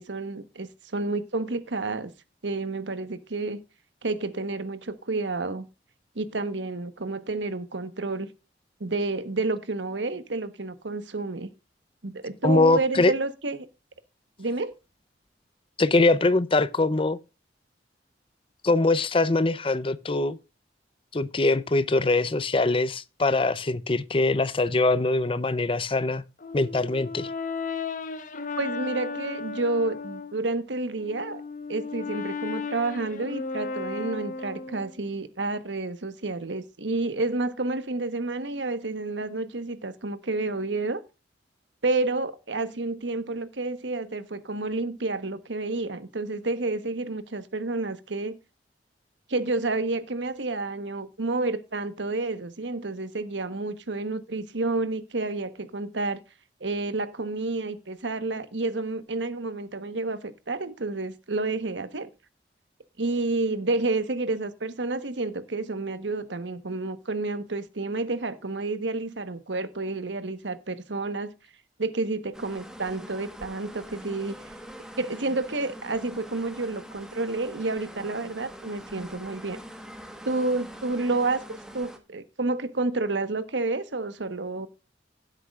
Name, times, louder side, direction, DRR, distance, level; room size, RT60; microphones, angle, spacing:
voice 1, 0.0-2.1 2.4-3.6 4.0-5.7 6.1-8.3 8.8-11.5 12.0-13.6 14.4-14.7 28.6-31.4 31.7-41.0 41.8-48.4 49.3-56.2 56.6-62.1 63.0-71.3 71.8-74.4 75.0-79.6 80.2-84.7, right 3 dB, 90° right, 1.2 m, -30 dB
voice 2, 12.4-13.1 15.8-17.2 18.6-20.4 21.1-26.2 26.5-27.3, left 2 dB, 30° left, 0.6 m, -23 dB
Brass instrument, 26.4-30.4 30.9-35.0, left 4 dB, 45° left, 1.0 m, -35 dB
sound 1, 72.3-82.0, equal, 5° right, 1.5 m, -44 dB
16.0 x 8.1 x 2.4 m
head